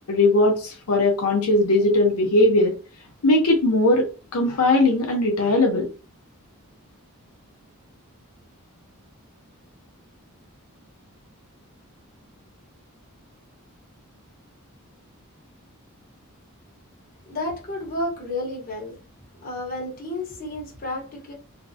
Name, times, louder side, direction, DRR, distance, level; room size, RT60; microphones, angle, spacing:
voice 1, 0.1-2.8 3.2-5.9, left 2 dB, 90° left, 0.6 m, -19 dB
voice 2, 17.3-19.0 19.4-21.3, left 1 dB, 40° left, 0.9 m, -31 dB
2.5 x 2.0 x 2.6 m
head